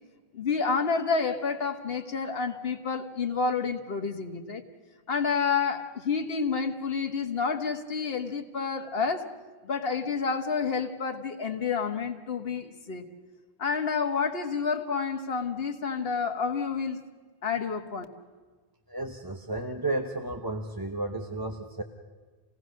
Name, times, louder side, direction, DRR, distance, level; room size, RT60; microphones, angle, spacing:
voice 1, 0.3-4.6 5.1-9.3 9.6-13.1 13.6-17.0 17.4-18.0, left 5 dB, 60° left, 5 dB, 1.6 m, -29 dB
voice 2, 18.9-21.8, right 2 dB, 20° right, 4 dB, 1.0 m, -33 dB
27.5 x 18.0 x 6.4 m, 1.4 s
omnidirectional pair, 1.1 m